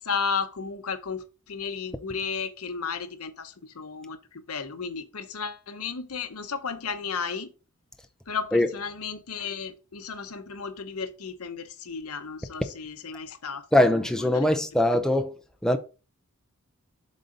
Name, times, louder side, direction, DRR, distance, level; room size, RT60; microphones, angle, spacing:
voice 1, 0.0-7.5 8.3-13.9 14.3-14.6, left 5 dB, 75° left, 0.9 m, -34 dB
voice 2, 13.7-15.4 15.6-15.8, left 1 dB, 5° left, 0.5 m, -21 dB
7.5 x 4.1 x 3.9 m
head